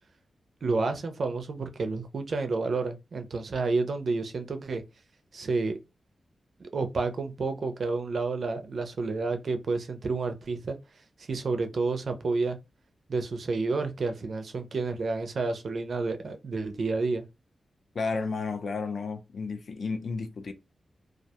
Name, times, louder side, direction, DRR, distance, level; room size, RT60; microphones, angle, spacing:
voice 1, 0.6-4.8 5.3-5.7 6.6-10.8 11.3-12.6 13.1-17.2, right 3 dB, 50° right, 0.4 m, -30 dB
voice 2, 17.9-20.5, left 4 dB, 50° left, 0.4 m, -32 dB
2.3 x 2.1 x 2.7 m
wide cardioid pair, 175°, 0 cm